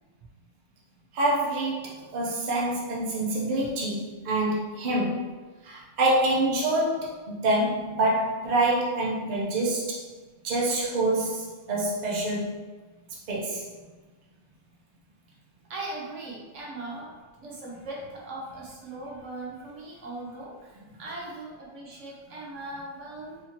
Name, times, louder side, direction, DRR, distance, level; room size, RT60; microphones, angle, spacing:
voice 1, 1.1-5.3 5.6-10.0 10.4-12.6 13.3-13.6, right 1 dB, 40° right, -5 dB, 0.8 m, -26 dB
voice 2, 15.7-17.1 17.4-23.4, right 2 dB, 70° right, -4 dB, 1.2 m, -39 dB
4.4 x 2.8 x 2.9 m, 1.3 s
omnidirectional pair, 1.3 m